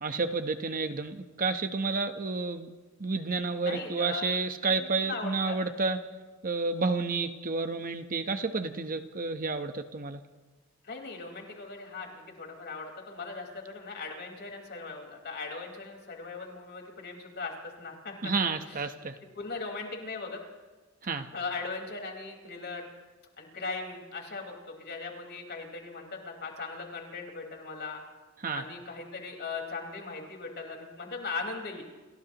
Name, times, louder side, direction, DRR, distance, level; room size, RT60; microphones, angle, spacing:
voice 1, 0.0-2.7 3.0-6.0 6.4-10.2 18.2-19.2 21.0-21.3 28.4-28.6, right 4 dB, 40° right, 7 dB, 1.0 m, -30 dB
voice 2, 3.6-4.2 4.8-5.6 10.8-18.3 19.3-20.4 21.3-22.9 23.4-28.0 28.5-31.8, left 4 dB, 50° left, 1 dB, 4.6 m, -39 dB
30.0 x 29.0 x 3.0 m, 1.3 s
head